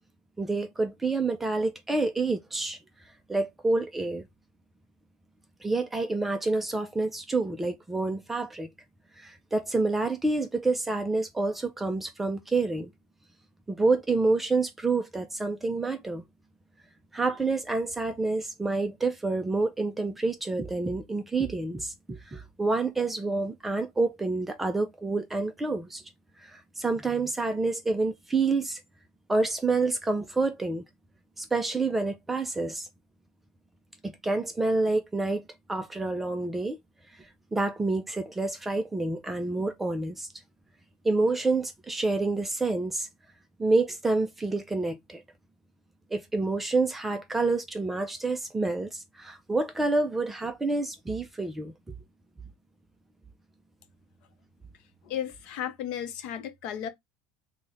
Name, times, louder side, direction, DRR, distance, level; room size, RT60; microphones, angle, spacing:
voice 1, 0.4-2.8 3.3-4.3 5.6-8.7 9.2-12.9 13.7-16.2 17.1-26.0 26.4-28.8 29.3-30.8 31.4-32.9 34.0-35.4 35.7-36.8 37.2-40.3 41.0-43.1 43.6-45.2 46.1-51.7, right 3 dB, 10° right, 0.3 m, -28 dB
voice 2, 55.0-56.9, left 9 dB, 45° left, 0.7 m, -34 dB
3.5 x 2.1 x 3.7 m
cardioid pair, 170°, 2 cm